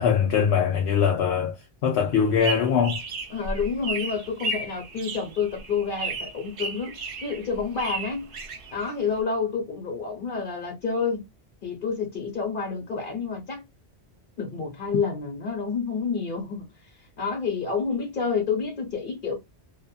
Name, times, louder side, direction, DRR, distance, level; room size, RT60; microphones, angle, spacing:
voice 1, 0.0-3.0, left 7 dB, 75° left, 0.8 m, -22 dB
sound 1, 2.2-9.2, right 3 dB, 60° right, 0.9 m, -34 dB
voice 2, 3.3-8.3 8.7-11.2 11.6-13.6 14.4-16.7 17.2-19.3, left 5 dB, 50° left, 1.3 m, -29 dB
2.6 x 2.5 x 2.4 m
omnidirectional pair, 1.1 m